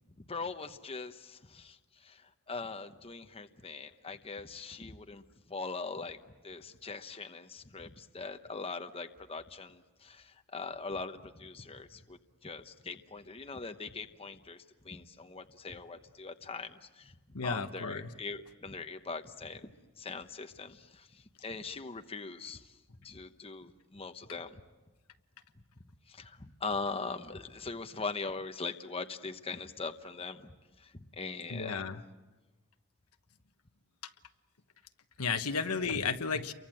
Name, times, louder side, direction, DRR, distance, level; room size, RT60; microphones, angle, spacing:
voice 1, 0.2-5.2 5.5-6.2 6.4-17.1 17.4-22.7 23.0-24.6 26.1-30.5 30.8-32.0, left 4 dB, 25° left, 7 dB, 1.0 m, -41 dB
voice 2, 17.3-18.1 31.5-32.0 35.2-36.5, left 5 dB, 80° left, 8 dB, 1.3 m, -33 dB
30.0 x 24.0 x 7.7 m, 1.2 s
head